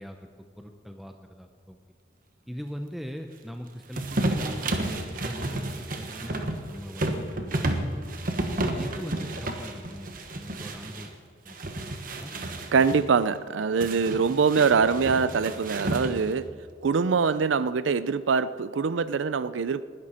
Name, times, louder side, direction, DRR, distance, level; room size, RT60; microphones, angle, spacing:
voice 1, 0.0-1.8 2.5-7.8 8.6-11.1 11.4-12.3, equal, ahead, 4 dB, 0.6 m, -40 dB
sound 1, 3.9-11.1 11.5-13.0 13.8-16.4, right 1 dB, 50° right, 1.3 m, -31 dB
voice 2, 12.7-16.5 16.8-19.8, right 5 dB, 90° right, 15 dB, 0.5 m, -24 dB
20.0 x 11.5 x 4.3 m, 2.3 s
head